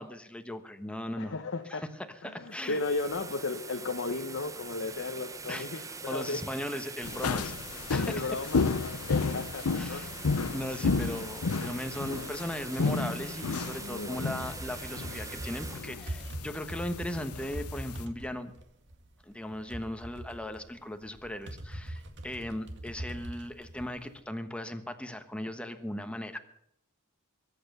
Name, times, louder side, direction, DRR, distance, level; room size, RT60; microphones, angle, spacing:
voice 1, 0.0-1.3 1.7-2.8 5.5-7.6 7.9-8.3 9.7-10.1 10.5-18.5 19.3-26.4, left 1 dB, 5° left, 7 dB, 1.1 m, -38 dB
voice 2, 1.2-1.8 2.2-6.4 8.0-10.0 13.8-14.2, left 3 dB, 60° left, 5 dB, 1.0 m, -35 dB
sound 1, 2.4-17.3, right 4 dB, 15° right, 0.7 m, -44 dB
sound 2, 7.0-18.0, left 4 dB, 80° left, 0.7 m, -32 dB
sound 3, 14.3-24.2, right 1 dB, 55° right, 2.0 m, -42 dB
22.0 x 8.7 x 6.7 m, 0.74 s
head